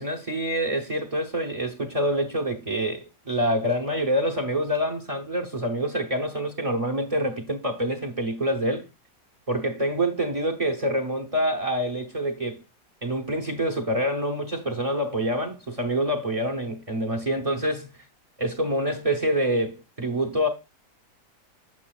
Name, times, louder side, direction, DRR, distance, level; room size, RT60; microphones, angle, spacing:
voice 1, 0.0-8.9 9.5-12.6 13.0-17.9 18.4-20.5, equal, 35° right, 0.6 m, -26 dB
8.4 x 6.7 x 2.3 m
omnidirectional pair, 1.8 m